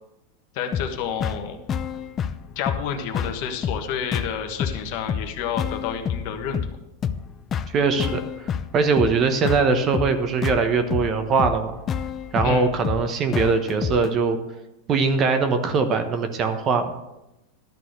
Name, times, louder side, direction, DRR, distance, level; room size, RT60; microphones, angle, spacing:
voice 1, 0.5-1.6 2.5-6.6 12.4-12.7, left 7 dB, 55° left, 5 dB, 1.4 m, -29 dB
sound 1, 0.7-14.1, left 7 dB, 25° left, 0.5 m, -29 dB
voice 2, 7.7-11.8 12.3-14.4 14.9-17.0, right 4 dB, 30° right, 8 dB, 1.0 m, -21 dB
12.0 x 4.1 x 7.9 m, 0.93 s
supercardioid pair, 145°, 0 cm